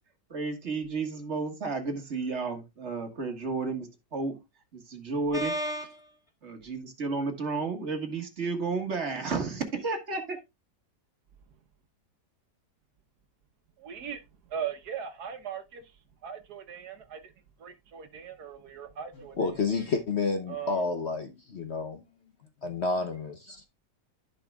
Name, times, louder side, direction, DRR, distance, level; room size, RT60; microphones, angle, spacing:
voice 1, 0.3-4.4 4.7-5.5 6.4-10.4, right 4 dB, 40° right, 1.7 m, -32 dB
voice 2, 5.3-6.1 19.2-22.0 22.6-23.7, left 3 dB, 50° left, 0.9 m, -30 dB
voice 3, 13.8-14.2 14.5-15.8 16.2-17.2 17.6-19.3 20.5-20.8, right 8 dB, 65° right, 1.4 m, -38 dB
14.5 x 5.3 x 2.3 m
omnidirectional pair, 1.8 m